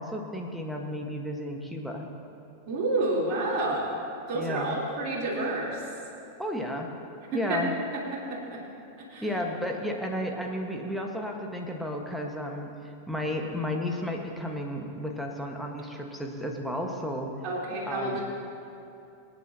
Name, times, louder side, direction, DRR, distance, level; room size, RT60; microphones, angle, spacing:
voice 1, 0.0-2.1 4.3-4.8 6.4-6.9 7.3-7.7 9.2-17.4 17.9-18.2, left 1 dB, ahead, 1 dB, 1.5 m, -33 dB
voice 2, 2.7-3.9 4.3-5.8 7.3-7.6 7.9-8.6 9.0-9.3 17.4-18.2, right 2 dB, 35° right, -6 dB, 3.5 m, -29 dB
25.5 x 9.5 x 2.9 m, 2.7 s
figure-of-eight pair, 90°, 0 cm